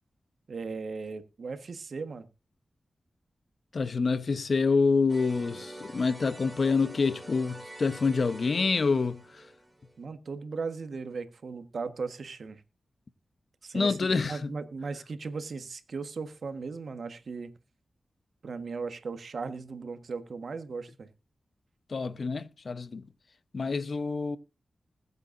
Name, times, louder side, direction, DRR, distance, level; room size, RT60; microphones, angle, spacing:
voice 1, 0.5-2.3 10.0-12.6 13.6-17.5 18.4-21.1, right 4 dB, 70° right, 1.4 m, -37 dB
voice 2, 3.7-9.4 13.7-14.5 21.9-23.0 23.5-24.4, left 4 dB, 60° left, 0.9 m, -27 dB
sound 1, 5.1-10.0, right 1 dB, 20° right, 2.7 m, -46 dB
21.0 x 8.1 x 2.6 m
cardioid pair, 60°, 0 cm